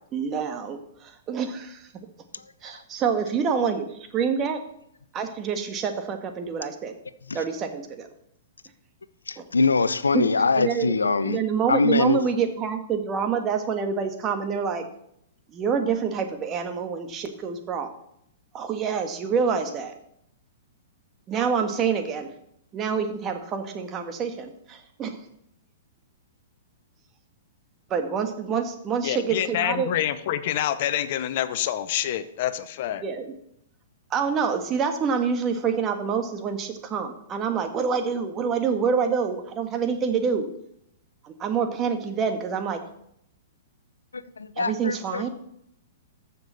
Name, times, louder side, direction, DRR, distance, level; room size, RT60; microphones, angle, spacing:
voice 1, 0.1-1.9 2.6-4.6 5.1-6.9 7.3-8.1 9.4-9.5 10.1-10.3 10.5-10.9 11.2-14.8 15.5-17.9 18.5-19.9 21.3-22.3 22.7-25.2 27.9-29.9 33.0-33.3 34.1-40.5 41.2-42.8 44.6-45.3, right 6 dB, 30° right, 6 dB, 1.5 m, -27 dB
voice 2, 9.3-11.4 11.7-12.2 44.1-45.3, left 4 dB, 90° left, 15 dB, 0.6 m, -23 dB
voice 3, 29.0-33.0, left 11 dB, 55° left, 13 dB, 0.8 m, -27 dB
14.0 x 6.9 x 4.1 m, 0.73 s
hypercardioid pair, 115°, 0 cm